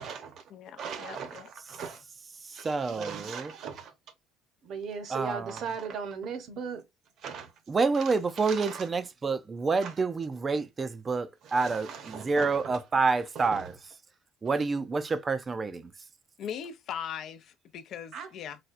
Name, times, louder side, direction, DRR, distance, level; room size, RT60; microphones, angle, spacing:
voice 1, 0.0-0.4 0.8-2.0 2.5-3.9 4.6-6.8 7.2-7.5 7.9-8.9 9.8-9.9 11.4-12.8 13.3-13.7 18.1-18.3, right 6 dB, 55° right, 0.9 m, -39 dB
voice 2, 0.5-1.5 16.4-18.6, left 8 dB, 55° left, 0.5 m, -40 dB
voice 3, 2.4-3.5 5.1-5.6 7.7-13.7 14.4-15.9, right 4 dB, 25° right, 0.4 m, -28 dB
4.1 x 2.3 x 2.4 m
cardioid pair, 125°, 0 cm